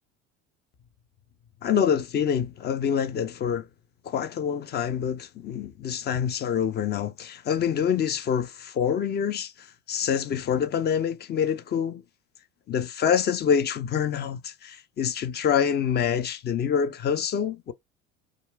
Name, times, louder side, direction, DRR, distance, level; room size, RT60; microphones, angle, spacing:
voice 1, 1.6-3.7 4.0-12.0 12.7-17.7, left 8 dB, 30° left, 0.5 m, -26 dB
2.4 x 2.2 x 3.2 m
figure-of-eight pair, 65°, 37 cm